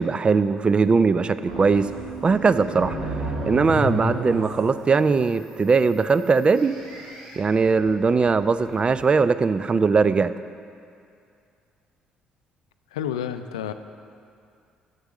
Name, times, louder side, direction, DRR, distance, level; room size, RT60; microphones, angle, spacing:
voice 1, 0.0-1.9 2.2-3.1 3.5-6.7 7.4-10.3, right 4 dB, 35° right, 14 dB, 0.4 m, -20 dB
sound 1, 1.5-9.1, equal, 80° right, 2.0 m, -33 dB
voice 2, 12.9-13.7, left 9 dB, 85° left, 10 dB, 0.3 m, -29 dB
8.0 x 6.7 x 6.1 m, 2.4 s
hypercardioid pair, 50°, 3 cm